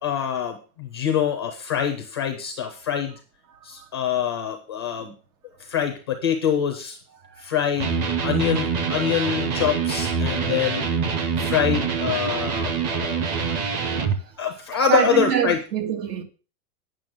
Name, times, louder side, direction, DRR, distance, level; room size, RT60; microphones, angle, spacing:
voice 1, 0.0-3.1 3.6-5.1 5.7-7.0 7.4-7.9 8.2-10.9 11.4-13.2 14.4-15.6, left 8 dB, 20° left, 0.4 m, -25 dB
Electric guitar, 7.8-14.2, right 5 dB, 30° right, 0.7 m, -25 dB
voice 2, 14.9-16.2, right 8 dB, 80° right, 2.3 m, -24 dB
9.1 x 6.2 x 6.3 m
supercardioid pair, 175°, 47 cm